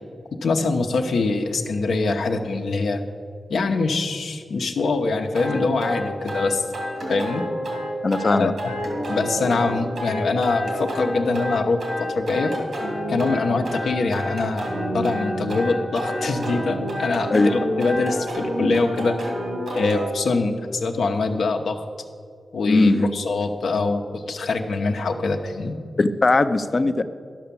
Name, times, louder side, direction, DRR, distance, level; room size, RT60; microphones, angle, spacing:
voice 1, 0.4-3.0 3.5-6.6 7.1-7.4 8.3-12.5 13.1-19.3 19.7-21.8 22.5-25.7, left 3 dB, 80° left, 4 dB, 0.9 m, -24 dB
sound 1, 5.3-20.1, equal, 80° right, 2.6 m, -29 dB
voice 2, 8.0-8.5 17.3-17.5 22.7-23.1 26.0-27.0, left 2 dB, 45° left, 10 dB, 0.6 m, -19 dB
12.0 x 5.9 x 6.9 m, 2.2 s
cardioid pair, 50°, 0 cm